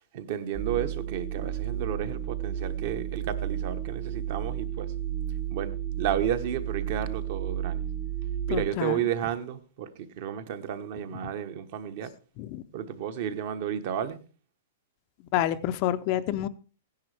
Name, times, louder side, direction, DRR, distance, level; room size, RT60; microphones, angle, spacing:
voice 1, 0.1-4.9 5.5-7.8 8.5-12.1 12.7-14.2, right 9 dB, 40° right, 1.1 m, -32 dB
sound 1, 0.5-8.7, right 10 dB, 15° right, 0.7 m, -32 dB
voice 2, 8.5-9.0 11.2-11.3 12.4-12.6 15.3-16.5, left 12 dB, 30° left, 0.5 m, -28 dB
15.5 x 10.5 x 3.4 m
hypercardioid pair, 170°, 0 cm